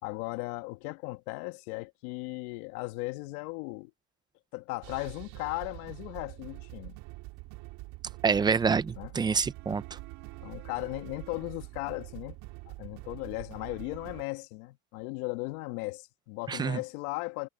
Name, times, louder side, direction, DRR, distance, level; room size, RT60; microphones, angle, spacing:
voice 1, 0.0-3.9 4.5-7.0 9.0-9.1 10.4-12.4 12.7-17.5, left 23 dB, 90° left, 1.4 m, -37 dB
sound 1, 4.8-14.2, right 21 dB, 65° right, 2.5 m, -45 dB
voice 2, 8.2-10.0 16.5-16.8, right 5 dB, 10° right, 0.3 m, -27 dB
cardioid pair, 150°, 42 cm